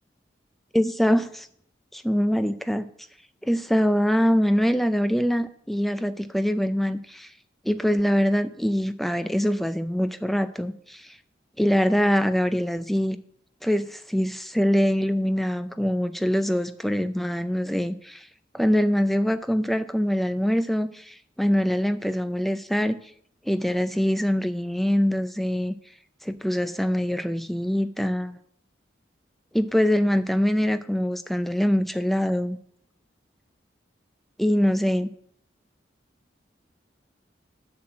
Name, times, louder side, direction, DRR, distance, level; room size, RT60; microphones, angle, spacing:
voice 1, 0.7-1.5 1.9-2.8 3.4-7.3 7.6-11.2 11.6-13.2 13.6-18.3 18.5-23.0 23.5-25.8 26.2-28.4 29.5-32.6 34.4-35.1, equal, ahead, 11 dB, 0.4 m, -24 dB
7.1 x 6.2 x 7.6 m, 0.66 s
head